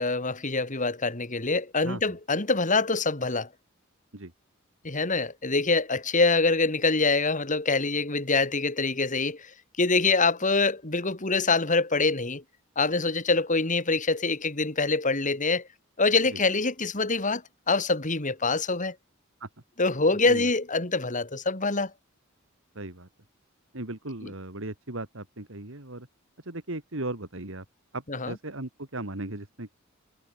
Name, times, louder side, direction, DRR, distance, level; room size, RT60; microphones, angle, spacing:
voice 1, 0.0-3.5 4.8-9.5 9.8-12.4 12.8-15.7 16.0-19.0 19.8-21.9 28.1-28.3, left 3 dB, 40° left, 2.9 m, -25 dB
voice 2, 22.7-23.1 23.7-26.1 26.4-27.6 27.9-29.8, right 2 dB, 65° right, 2.7 m, -37 dB
head